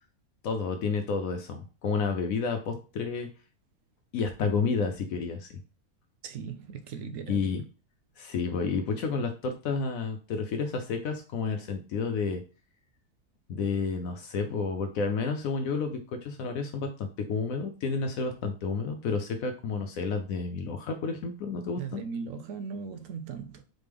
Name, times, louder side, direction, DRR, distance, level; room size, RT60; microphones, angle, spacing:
voice 1, 0.4-3.3 4.1-5.6 7.3-7.6 8.2-12.4 13.5-22.0, left 5 dB, 70° left, 1.0 m, -30 dB
voice 2, 6.2-7.5 21.8-23.6, right 6 dB, 65° right, 0.9 m, -38 dB
4.1 x 3.3 x 3.4 m
omnidirectional pair, 1.6 m